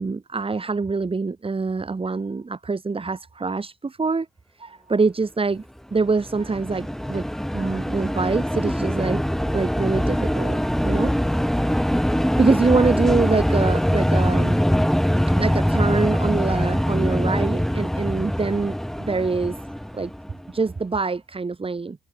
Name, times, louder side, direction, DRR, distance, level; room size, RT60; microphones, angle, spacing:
voice 1, 0.0-4.3 4.6-5.7 5.9-7.2 7.5-9.2 9.5-11.1 12.4-14.6 15.4-19.6 19.9-20.1 20.5-22.0, right 4 dB, 25° right, 7.4 m, -24 dB
sound 1, 6.0-20.5, equal, ahead, 7.0 m, -23 dB
cardioid pair, 90°, 20 cm